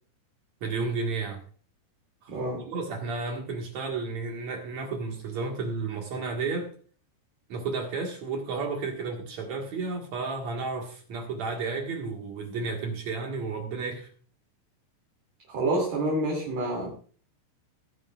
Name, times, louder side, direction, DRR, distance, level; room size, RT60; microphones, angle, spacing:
voice 1, 0.6-1.4 2.2-2.3 2.6-6.7 7.5-14.1, right 4 dB, 60° right, 1 dB, 2.0 m, -32 dB
voice 2, 2.3-2.6 15.5-16.9, right 2 dB, 40° right, -2 dB, 3.2 m, -28 dB
18.5 x 10.5 x 2.4 m, 0.42 s
omnidirectional pair, 5.7 m